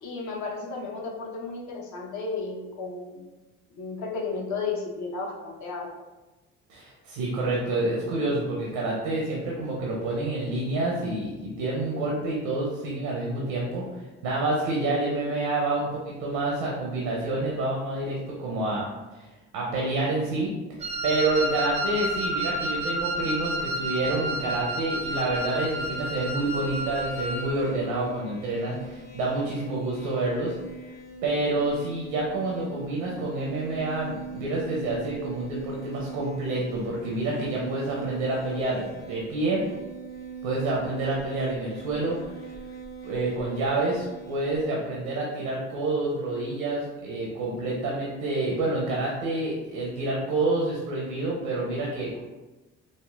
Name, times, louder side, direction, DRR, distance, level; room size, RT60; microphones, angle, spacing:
voice 1, 0.0-3.2 3.7-5.9, left 4 dB, 60° left, -1 dB, 0.8 m, -33 dB
voice 2, 6.7-13.8 14.2-18.9 19.2-19.3 19.5-20.5 21.0-30.6 31.2-39.6 40.4-42.2 43.0-52.2, right 2 dB, 85° right, -3 dB, 0.6 m, -28 dB
Wind instrument woodwind instrument, 20.8-27.5, right 1 dB, 20° right, 0.4 m, -30 dB
sound 1, 25.7-44.6, right 5 dB, 30° left, 0.6 m, -41 dB
3.5 x 2.1 x 2.3 m, 1.1 s
supercardioid pair, 65°, 33 cm